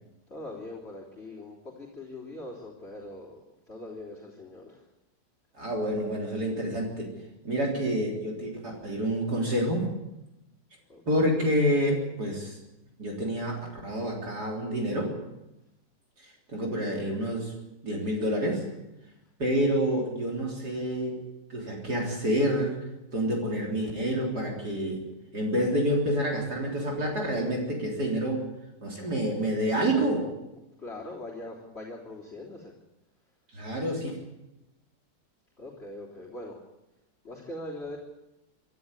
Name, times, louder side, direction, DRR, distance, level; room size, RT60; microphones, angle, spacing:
voice 1, 0.3-3.4 3.7-4.8 10.9-11.4 30.8-32.7 35.6-36.6 37.2-38.0, left 1 dB, 35° left, -4 dB, 3.7 m, -41 dB
voice 2, 5.6-7.1 7.4-9.9 11.1-12.6 13.0-15.1 16.5-17.5 17.8-18.7 19.4-21.2 21.5-22.8 23.1-25.0 25.3-28.4 28.8-30.3 33.5-34.1, equal, 65° right, -1 dB, 4.2 m, -28 dB
25.5 x 13.0 x 9.9 m, 0.95 s
omnidirectional pair, 1.9 m